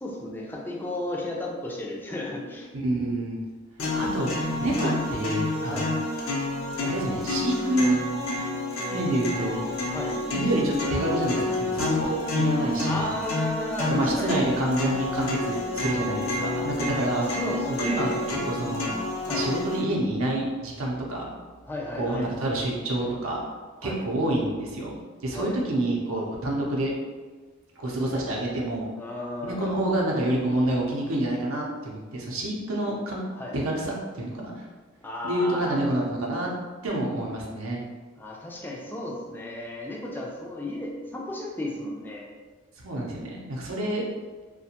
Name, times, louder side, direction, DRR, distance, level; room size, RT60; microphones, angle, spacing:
voice 1, 0.0-2.7 4.8-5.0 5.7-5.9 9.9-10.1 12.9-14.4 17.3-18.2 19.2-19.5 21.7-22.3 23.8-24.0 25.3-25.5 29.0-29.7 33.3-33.5 35.0-35.8 38.2-42.3, left 1 dB, 10° left, -2 dB, 0.4 m, -34 dB
voice 2, 2.7-3.4 4.0-5.9 6.9-8.0 8.9-9.6 10.1-13.2 13.9-17.3 17.8-18.9 19.3-21.3 22.0-23.4 23.8-25.0 25.2-26.9 27.8-28.9 29.4-33.2 33.5-34.6 35.2-36.5 36.8-37.8 42.8-44.0, right 1 dB, 75° right, -2 dB, 0.6 m, -27 dB
sound 1, 3.8-19.8, left 2 dB, 80° left, 0.5 m, -29 dB
2.4 x 2.2 x 2.8 m, 1.4 s
head